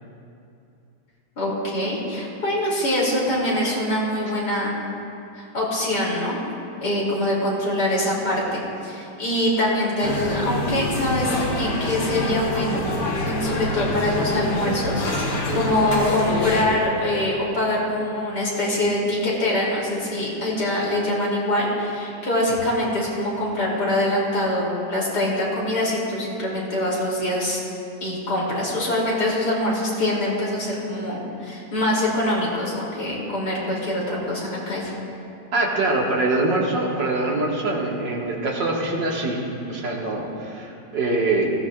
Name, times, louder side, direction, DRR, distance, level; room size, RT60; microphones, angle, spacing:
voice 1, 1.4-4.8 5.4-6.4 6.8-12.8 13.3-27.6 28.0-34.9, left 1 dB, 65° left, -5 dB, 3.6 m, -24 dB
sound 1, 10.0-16.6, left 1 dB, 90° left, 2.1 m, -26 dB
voice 2, 15.3-15.6 35.5-41.5, right 2 dB, 85° right, -2 dB, 2.4 m, -24 dB
19.0 x 15.5 x 2.5 m, 2.6 s
omnidirectional pair, 1.9 m